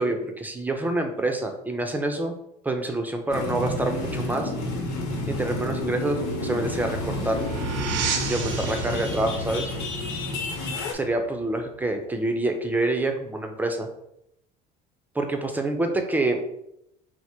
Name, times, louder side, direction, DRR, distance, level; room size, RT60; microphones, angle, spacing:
voice 1, 0.0-2.3 2.6-4.5 5.3-7.4 8.3-9.7 10.9-13.9 15.1-16.4, right 2 dB, 10° right, 4 dB, 0.6 m, -27 dB
sound 1, 3.3-10.9, left 2 dB, 80° left, 1.2 m, -30 dB
sound 2, 6.4-11.4, right 5 dB, 90° right, 0.7 m, -33 dB
4.6 x 2.1 x 4.3 m, 0.80 s
cardioid pair, 115°, 19 cm